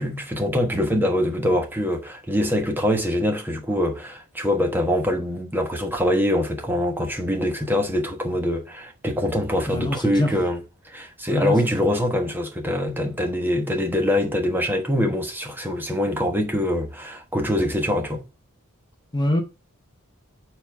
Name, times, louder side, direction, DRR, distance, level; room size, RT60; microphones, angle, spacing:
voice 1, 0.0-10.6 10.8-18.2, left 1 dB, 10° right, 1.1 m, -24 dB
voice 2, 9.7-10.3 11.3-11.9 19.1-19.4, left 1 dB, 20° left, 0.9 m, -24 dB
6.9 x 4.4 x 4.6 m
head